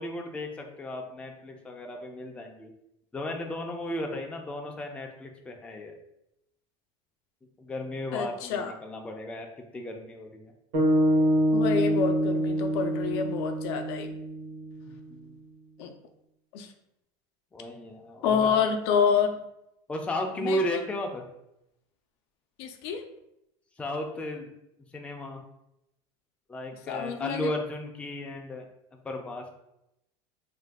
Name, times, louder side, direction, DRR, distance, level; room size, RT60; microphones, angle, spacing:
voice 1, 0.0-2.7 3.1-6.0 7.6-9.5 9.7-10.5 14.8-15.4 17.5-18.5 19.9-21.3 23.8-24.5 24.9-25.4 26.5-28.7 29.0-29.6, left 1 dB, 10° left, 2 dB, 0.3 m, -35 dB
voice 2, 8.1-8.7 11.5-14.1 15.8-15.9 16.5-16.7 18.2-19.4 20.4-20.8 22.6-23.0 26.9-27.5, left 6 dB, 80° left, 5 dB, 0.4 m, -28 dB
sound 1, 10.7-15.0, equal, 70° right, 0.9 m, -25 dB
2.5 x 2.2 x 3.4 m, 0.83 s
supercardioid pair, 135°, 13 cm